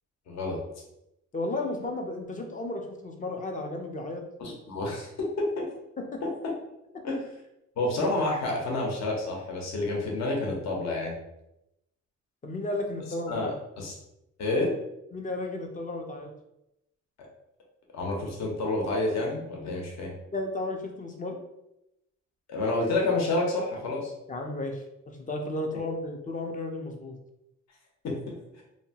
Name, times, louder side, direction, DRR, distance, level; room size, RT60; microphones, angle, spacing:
voice 1, 0.3-0.6 4.4-5.1 5.4-5.7 6.2-6.5 7.0-7.2 7.8-11.1 13.3-13.9 14.4-14.7 17.9-20.1 22.5-24.1 28.0-28.6, left 2 dB, 65° left, -1 dB, 0.8 m, -29 dB
voice 2, 1.3-4.2 6.1-6.2 12.4-13.5 15.1-16.3 20.3-21.4 24.3-27.2, left 2 dB, 25° left, 2 dB, 0.5 m, -33 dB
2.8 x 2.2 x 2.7 m, 0.87 s
cardioid pair, 90°, 30 cm